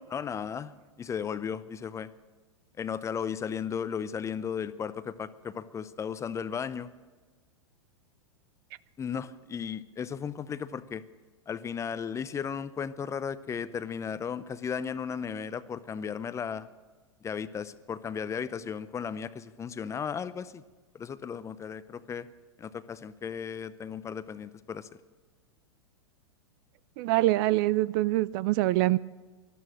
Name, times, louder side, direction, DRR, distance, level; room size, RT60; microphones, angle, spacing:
voice 1, 0.1-0.7 1.0-2.1 2.8-6.9 9.0-11.0 11.5-16.7 17.2-20.6 20.9-22.3 22.6-24.9, left 7 dB, 20° left, 14 dB, 0.6 m, -35 dB
voice 2, 27.0-29.0, right 17 dB, 45° right, 20 dB, 0.4 m, -24 dB
18.5 x 12.5 x 6.2 m, 1.3 s
hypercardioid pair, 100°, 16 cm